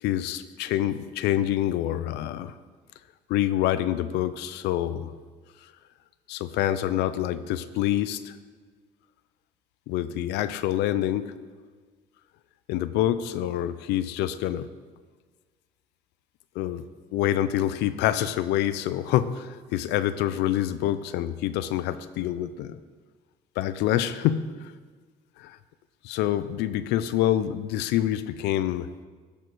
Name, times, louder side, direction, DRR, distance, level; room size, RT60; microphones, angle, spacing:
voice 1, 0.0-2.5 3.3-5.1 6.3-8.4 9.9-11.3 12.7-14.7 16.6-16.8 17.1-22.8 23.6-24.5 25.4-25.6 26.0-28.9, left 12 dB, 80° left, 13 dB, 0.5 m, -26 dB
13.5 x 5.1 x 4.6 m, 1.5 s
supercardioid pair, 75°, 17 cm